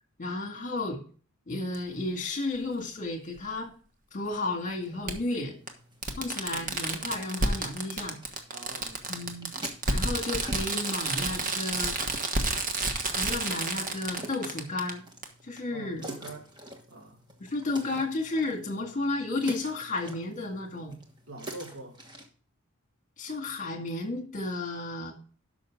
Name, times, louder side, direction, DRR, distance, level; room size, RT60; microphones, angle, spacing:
voice 1, 0.2-1.0 1.5-3.7 4.1-5.6 6.2-8.2 9.1-9.5 9.9-12.0 13.1-15.0 15.4-16.1 17.4-21.0 23.2-25.1, left 2 dB, 35° left, 2.0 m, -33 dB
Fireworks, 1.7-1.8 3.4-3.5 5.1-5.2 5.7-5.8 6.0-14.9 15.2-15.3, right 2 dB, 40° right, 1.2 m, -30 dB
sound 1, 4.1-22.3, right 1 dB, 20° right, 1.3 m, -47 dB
voice 2, 8.5-9.0 15.7-16.5 16.9-17.2 21.3-22.0, right 2 dB, 70° right, 1.9 m, -44 dB
12.5 x 5.9 x 3.7 m
head